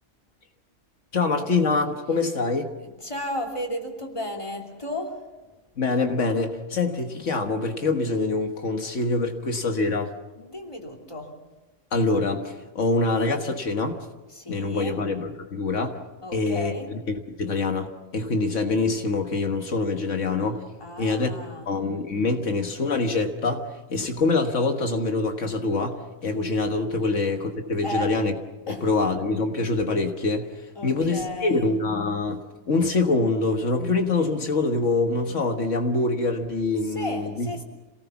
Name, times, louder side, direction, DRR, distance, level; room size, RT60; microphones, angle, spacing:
voice 1, 1.1-2.7 5.8-10.1 11.9-14.0 14.5-16.0 16.3-16.7 17.1-20.6 21.0-21.3 21.7-28.3 28.7-30.5 30.8-37.6, left 3 dB, 80° left, 5 dB, 1.8 m, -25 dB
voice 2, 2.8-5.2 10.4-11.3 14.3-15.0 16.2-17.0 20.8-21.7 27.8-28.1 28.7-28.9 30.8-31.7 36.9-37.6, left 1 dB, 25° left, 1 dB, 3.2 m, -33 dB
27.5 x 18.5 x 7.1 m, 1.1 s
omnidirectional pair, 1.3 m